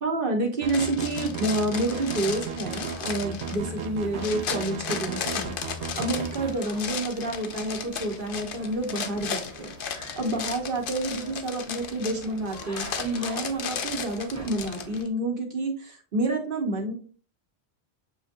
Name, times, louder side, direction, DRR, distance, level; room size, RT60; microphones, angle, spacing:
voice 1, 0.0-5.6 6.0-9.7 10.1-16.9, right 2 dB, 55° right, 1 dB, 1.1 m, -29 dB
sound 1, 0.6-6.5, right 6 dB, 85° right, 0.9 m, -35 dB
sound 2, 0.7-15.1, left 7 dB, 60° left, 0.7 m, -35 dB
sound 3, 1.8-15.0, equal, 15° right, 0.8 m, -44 dB
6.7 x 2.7 x 2.6 m, 0.39 s
omnidirectional pair, 1.1 m